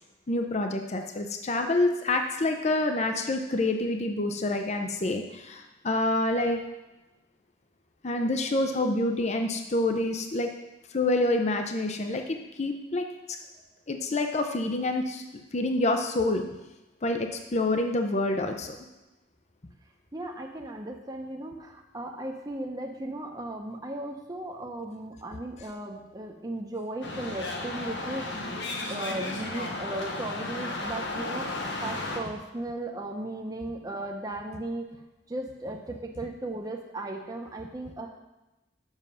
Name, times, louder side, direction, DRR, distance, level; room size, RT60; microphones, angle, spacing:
voice 1, 0.3-6.6 8.0-10.5 10.9-13.1 13.9-15.2 15.5-16.4 17.0-18.8, left 2 dB, 40° left, 5 dB, 0.7 m, -27 dB
voice 2, 20.1-28.4 28.9-34.9 35.3-38.1, right 1 dB, 20° right, 1 dB, 0.8 m, -36 dB
sound 1, 27.0-32.2, left 2 dB, 85° left, 1.3 m, -34 dB
7.3 x 6.4 x 5.6 m, 1.0 s
head